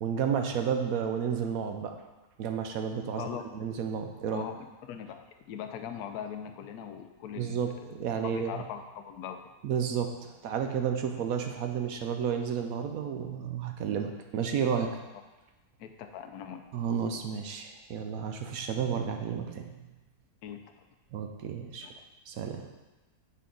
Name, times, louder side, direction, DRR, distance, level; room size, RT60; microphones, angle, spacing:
voice 1, 0.0-1.9 2.4-4.4 7.3-8.5 9.6-15.0 16.7-19.7 21.1-21.9 22.3-22.7, right 7 dB, 70° right, 5 dB, 0.9 m, -32 dB
voice 2, 4.3-5.2 5.5-8.0 8.2-9.4 15.1-15.2 15.8-16.6 20.4-20.6 21.8-22.1, left 8 dB, 70° left, 5 dB, 1.1 m, -41 dB
8.2 x 4.4 x 3.8 m, 1.1 s
omnidirectional pair, 1.8 m